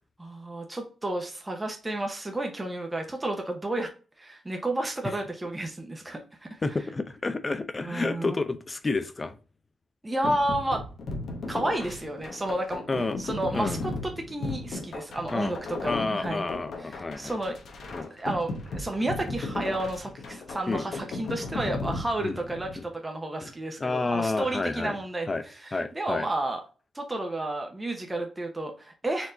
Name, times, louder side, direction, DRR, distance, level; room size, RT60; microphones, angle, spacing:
voice 1, 0.2-3.9 4.2-6.5 7.8-8.4 10.0-10.8 11.5-12.8 13.2-13.9 14.2-16.5 16.8-17.6 17.8-25.3 25.6-26.6 26.9-29.3, right 1 dB, 15° right, 0.9 m, -31 dB
voice 2, 6.6-9.4 12.9-13.2 13.5-13.8 15.3-15.6 15.9-17.4 17.9-18.1 19.7-19.8 20.7-20.8 22.2-22.4 22.8-22.9 23.4-23.5 23.8-25.0 25.3-25.4 25.7-26.3, left 3 dB, 30° left, 0.6 m, -30 dB
sound 1, 10.2-22.8, left 2 dB, 70° left, 1.0 m, -36 dB
4.4 x 2.9 x 3.9 m
cardioid pair, 95°, 0 cm